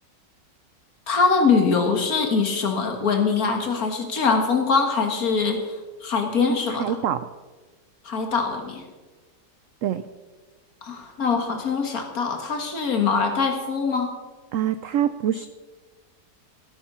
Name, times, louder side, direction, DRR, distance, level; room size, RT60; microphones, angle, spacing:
voice 1, 1.1-7.0 8.0-8.8 10.8-14.1, left 5 dB, 55° left, 4 dB, 2.1 m, -23 dB
voice 2, 6.5-7.3 9.8-10.0 14.5-15.5, right 10 dB, 80° right, 12 dB, 0.7 m, -25 dB
15.0 x 8.9 x 5.7 m, 1.3 s
omnidirectional pair, 1.9 m